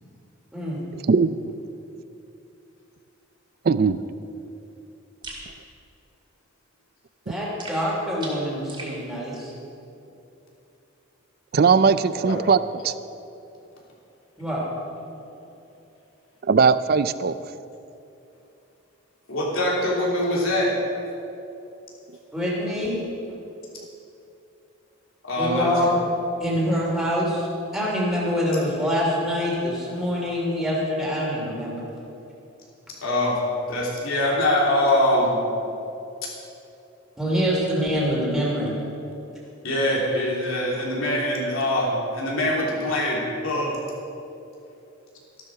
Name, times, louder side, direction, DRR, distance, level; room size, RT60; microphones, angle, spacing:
voice 1, 0.9-1.3 3.6-4.0 11.5-12.9 16.4-17.4, right 5 dB, 45° right, 14 dB, 0.4 m, -19 dB
sound 1, 5.2-5.5 7.6-9.0, right 3 dB, 20° right, 2.3 m, -38 dB
voice 2, 7.3-9.5 14.4-14.6 22.3-23.0 25.4-26.0 26.4-27.5 27.7-31.8 37.2-38.7, equal, ahead, -6 dB, 2.7 m, -25 dB
voice 3, 19.3-20.7 25.2-25.7 33.0-33.4 33.7-35.4 39.6-43.7, left 1 dB, 75° left, -3 dB, 3.2 m, -23 dB
13.5 x 12.0 x 4.8 m, 2.8 s
head